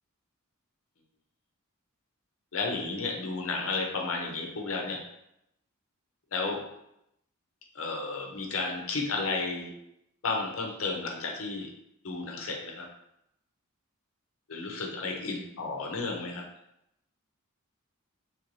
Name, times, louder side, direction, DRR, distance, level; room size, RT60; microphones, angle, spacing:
voice 1, 2.5-5.0 6.3-6.6 7.7-9.7 10.2-11.7 12.0-12.9 14.5-16.5, left 3 dB, 70° left, 1 dB, 0.7 m, -32 dB
3.1 x 2.6 x 3.1 m, 0.79 s
head